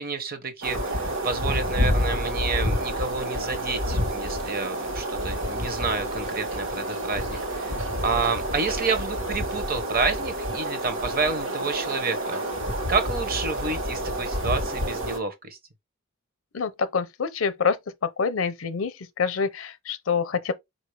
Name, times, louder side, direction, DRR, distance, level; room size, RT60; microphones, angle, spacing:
voice 1, 0.0-12.4 12.9-15.6, right 4 dB, 45° right, 0.9 m, -29 dB
sound 1, 0.6-15.2, equal, 70° right, 1.3 m, -28 dB
voice 2, 16.5-17.8 18.2-20.5, left 5 dB, 70° left, 0.6 m, -26 dB
4.8 x 2.7 x 3.2 m
head